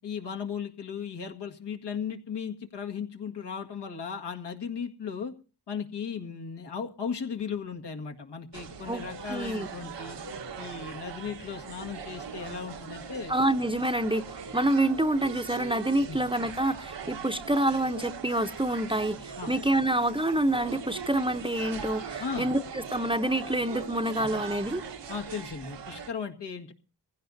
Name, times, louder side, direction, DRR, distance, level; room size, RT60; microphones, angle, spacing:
voice 1, 0.0-5.3 5.7-10.2 10.6-13.3 16.1-16.2 19.4-19.5 22.2-22.5 25.1-26.7, left 6 dB, 75° left, 2.0 m, -36 dB
sound 1, 8.5-26.1, right 6 dB, 85° right, 1.5 m, -40 dB
voice 2, 9.3-9.7 13.3-14.2 14.5-24.8, right 1 dB, 10° right, 0.8 m, -27 dB
22.5 x 16.0 x 2.7 m
cardioid pair, 45°, 41 cm